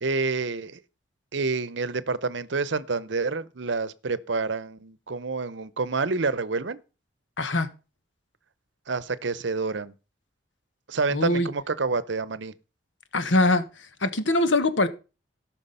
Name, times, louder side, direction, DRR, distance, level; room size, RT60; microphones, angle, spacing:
voice 1, 0.0-0.8 1.3-6.8 8.9-9.9 10.9-12.5, right 4 dB, 75° right, 0.7 m, -28 dB
voice 2, 7.4-7.7 11.1-11.5 13.1-13.6 14.0-14.9, left 2 dB, 80° left, 1.3 m, -22 dB
17.5 x 6.0 x 5.5 m
head